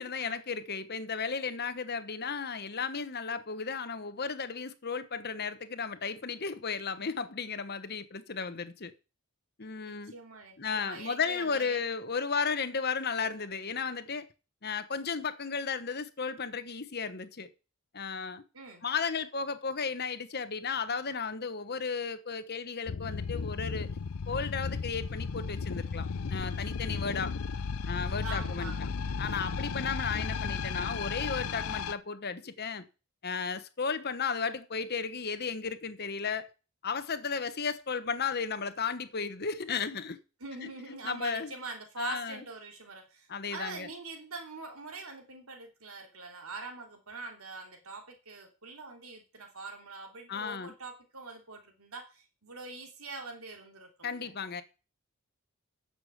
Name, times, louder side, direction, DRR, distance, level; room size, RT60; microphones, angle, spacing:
voice 1, 0.0-8.9 9.6-10.1 10.6-14.3 14.6-17.5 17.9-18.4 18.8-23.9 24.3-27.3 27.9-28.9 29.2-32.8 33.2-36.5 36.8-40.2 40.6-41.5 42.0-42.4 43.3-43.9 50.3-50.7 54.0-54.6, left 5 dB, 45° left, 1.1 m, -34 dB
voice 2, 9.8-11.8 18.5-18.8 28.2-28.8 40.4-54.3, right 3 dB, 75° right, 3.1 m, -44 dB
sound 1, 22.9-31.9, left 5 dB, 75° left, 0.6 m, -34 dB
9.9 x 7.0 x 8.0 m
head